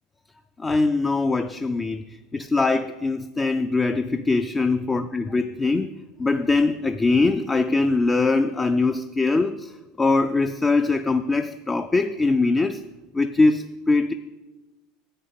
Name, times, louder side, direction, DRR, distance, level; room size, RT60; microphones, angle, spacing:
voice 1, 0.6-5.9 6.2-9.7 10.0-12.8 13.1-14.1, left 3 dB, 15° left, 8 dB, 0.3 m, -22 dB
10.0 x 8.6 x 5.7 m, 1.2 s
supercardioid pair, 150°, 0 cm